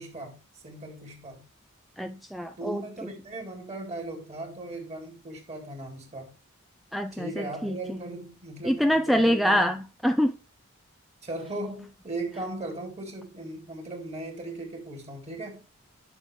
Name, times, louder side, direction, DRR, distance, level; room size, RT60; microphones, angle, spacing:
voice 1, 0.0-1.5 2.6-6.3 7.1-9.7 11.2-15.6, right 2 dB, 30° right, 3.5 m, -38 dB
voice 2, 2.0-2.9 6.9-8.0 8.6-10.3, equal, ahead, 0.4 m, -25 dB
10.5 x 6.1 x 3.2 m
head